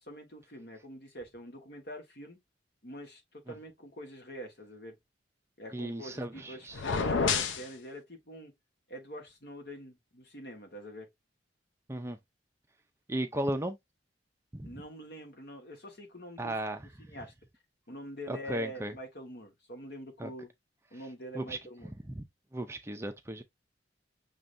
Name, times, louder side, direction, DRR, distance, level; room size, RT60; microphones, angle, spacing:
voice 1, 0.0-2.4 2.8-5.0 5.6-8.5 8.9-11.1 14.6-16.5 17.0-17.3 17.9-20.5 20.9-21.9, equal, 60° left, 1.4 m, -45 dB
voice 2, 5.7-6.8 11.9-12.2 13.1-13.8 14.5-14.7 16.4-16.8 18.3-18.9 20.2-20.3 21.3-21.6 22.1-22.2 22.5-23.4, right 1 dB, 15° right, 0.5 m, -35 dB
sound 1, 6.7-7.7, left 5 dB, 85° left, 0.6 m, -28 dB
6.0 x 3.2 x 2.5 m
head